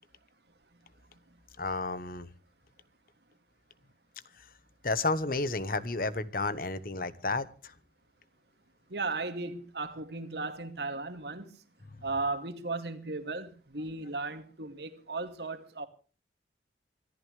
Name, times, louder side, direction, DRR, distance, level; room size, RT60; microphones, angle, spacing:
voice 1, 1.6-2.3 4.4-4.5 4.8-7.7 11.9-12.0, left 3 dB, 50° left, 1.2 m, -32 dB
voice 2, 8.9-11.5 12.0-15.9, right 3 dB, 65° right, 2.5 m, -36 dB
25.0 x 14.5 x 3.3 m
head